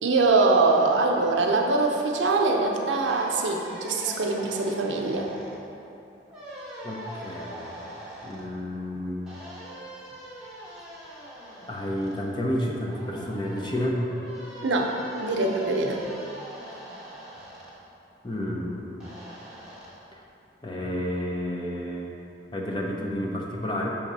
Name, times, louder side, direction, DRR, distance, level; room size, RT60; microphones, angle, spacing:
voice 1, 0.0-5.3 14.6-16.0, right 3 dB, 80° right, 1 dB, 0.6 m, -23 dB
sound 1, 0.6-2.3 3.1-5.6 6.3-8.5 9.3-12.2 12.8-17.7 19.0-19.9, right 1 dB, 5° right, 1.1 m, -42 dB
voice 2, 6.8-7.7 8.2-9.2 11.6-14.0 18.2-19.0 20.1-20.2 20.6-22.1 22.5-23.9, left 1 dB, 25° left, -1 dB, 0.6 m, -30 dB
5.9 x 3.7 x 5.4 m, 2.8 s
head